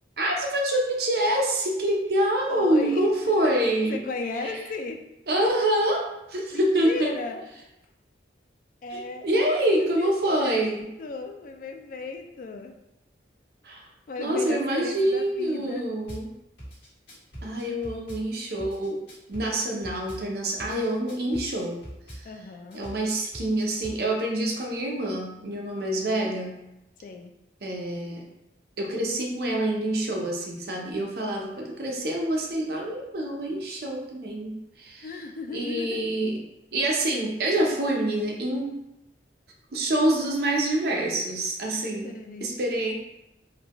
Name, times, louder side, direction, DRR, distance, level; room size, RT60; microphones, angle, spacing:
voice 1, 0.2-4.0 4.4-4.6 5.3-7.1 8.9-10.9 13.6-13.9 14.2-16.3 17.4-19.0 19.3-21.8 22.1-22.3 22.7-26.6 27.6-28.3 28.8-35.1 35.5-36.4 36.7-38.8 39.7-42.2 42.4-42.9, right 1 dB, 60° right, 0 dB, 0.6 m, -26 dB
voice 2, 2.5-3.1 3.9-5.0 6.5-7.5 8.8-9.6 10.0-10.1 10.4-12.7 14.1-15.9 22.2-22.8 27.0-27.3 35.0-36.0 42.0-42.5, left 3 dB, 50° left, 5 dB, 0.3 m, -35 dB
Drum kit / Bass drum, 16.1-16.2 16.6-18.2 18.6-20.2 20.6-22.2 22.7-24.0, equal, 75° left, 1.4 m, -41 dB
3.8 x 2.2 x 2.9 m, 0.89 s
head